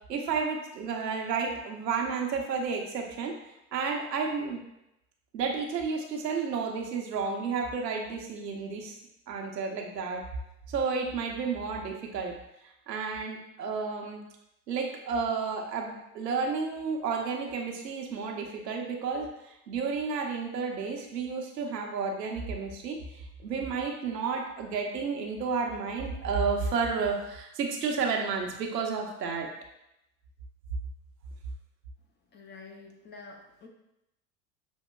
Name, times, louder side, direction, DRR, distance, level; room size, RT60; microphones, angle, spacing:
voice 1, 0.1-3.3 3.7-4.6 5.3-8.9 9.3-10.2 10.7-12.3 12.6-14.2 14.7-29.5, right 5 dB, 80° right, 1 dB, 0.9 m, -31 dB
voice 2, 32.3-33.7, left 4 dB, 25° left, 2 dB, 0.5 m, -48 dB
6.2 x 2.8 x 2.2 m, 0.86 s
hypercardioid pair, 80°, 49 cm